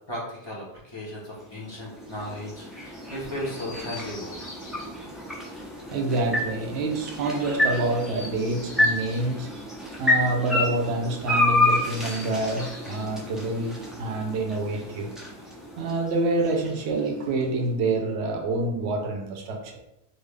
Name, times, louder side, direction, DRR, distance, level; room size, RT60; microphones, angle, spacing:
voice 1, 0.1-4.3, left 1 dB, 25° left, -6 dB, 1.0 m, -36 dB
sound 1, 1.2-17.4, left 1 dB, ahead, 0.4 m, -30 dB
Chirp tweet, 3.5-4.9 7.9-9.3 11.7-13.1 14.5-15.6 16.7-17.6, left 2 dB, 40° left, 1.4 m, -46 dB
voice 2, 5.9-9.5 10.0-15.1 15.8-19.8, right 2 dB, 80° right, 3 dB, 0.9 m, -27 dB
3.7 x 2.3 x 3.2 m, 0.86 s
omnidirectional pair, 1.1 m